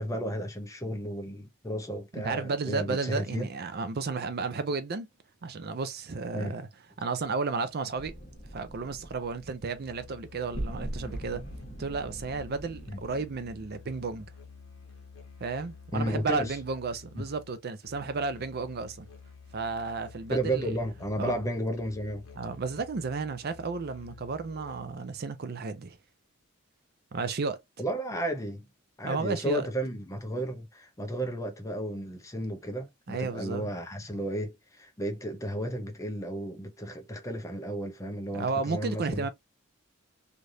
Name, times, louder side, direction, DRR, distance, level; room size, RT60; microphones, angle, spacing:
voice 1, 0.0-3.5 6.3-6.5 12.9-13.0 15.9-16.6 20.3-22.3 27.8-28.7 29.0-39.3, right 1 dB, 15° left, 0.6 m, -33 dB
voice 2, 2.2-5.1 5.4-6.6 7.0-8.1 8.5-11.4 11.8-14.3 15.4-19.1 19.5-20.8 21.2-21.4 22.3-26.0 27.1-27.6 29.0-29.7 33.1-33.7 38.3-39.3, right 4 dB, 45° right, 0.5 m, -33 dB
sound 1, 7.9-13.7, right 1 dB, 30° left, 1.2 m, -41 dB
Musical instrument, 9.8-25.1, left 5 dB, 65° left, 1.1 m, -51 dB
3.2 x 2.5 x 2.6 m
head